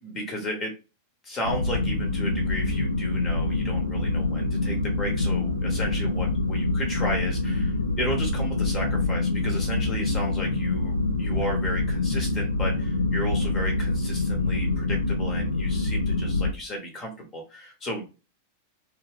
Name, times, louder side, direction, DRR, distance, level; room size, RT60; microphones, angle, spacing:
voice 1, 0.0-0.7 1.2-18.1, equal, 25° left, 2 dB, 0.8 m, -34 dB
sound 1, 1.4-16.5, left 2 dB, 85° left, 0.4 m, -26 dB
2.7 x 2.4 x 3.2 m, 0.31 s
figure-of-eight pair, 90°, 0 cm